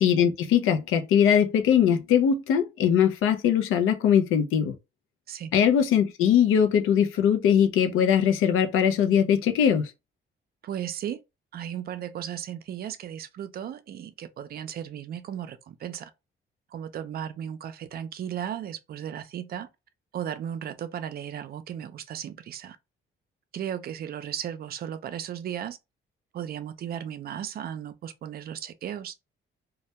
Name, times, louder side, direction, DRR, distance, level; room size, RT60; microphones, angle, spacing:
voice 1, 0.0-4.7 5.5-9.9, left 8 dB, 90° left, 0.4 m, -21 dB
voice 2, 10.6-11.2 11.5-16.1 16.7-19.7 20.1-22.8 23.5-25.8 26.3-29.1, right 9 dB, 50° right, 0.4 m, -35 dB
2.1 x 2.1 x 2.7 m
cardioid pair, 130°, 21 cm